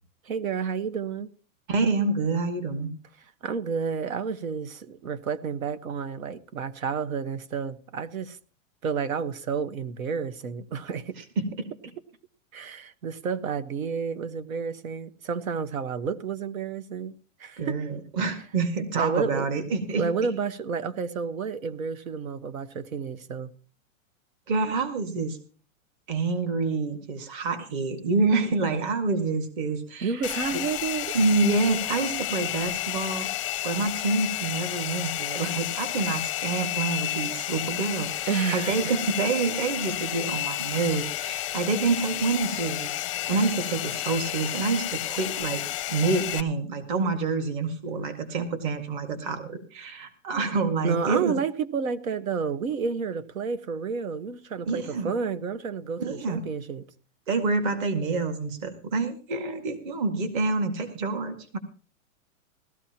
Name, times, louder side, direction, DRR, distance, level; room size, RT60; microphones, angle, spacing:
voice 1, 0.2-1.3 3.4-8.4 8.8-11.2 12.5-17.1 17.4-17.8 18.9-19.5 19.9-23.5 30.0-31.2 38.3-39.0 50.8-56.8, right 6 dB, 90° right, 1.5 m, -30 dB
voice 2, 1.7-2.9 11.4-11.5 17.6-20.1 24.5-25.4 26.1-30.2 31.1-33.3 33.6-42.9 43.3-45.6 45.9-51.4 54.7-55.1 56.0-56.4 57.3-61.6, right 3 dB, 40° right, 2.0 m, -27 dB
Domestic sounds home sounds, 30.2-46.4, left 15 dB, 25° left, 0.5 m, -31 dB
19.0 x 14.0 x 2.9 m
supercardioid pair, 170°, 40 cm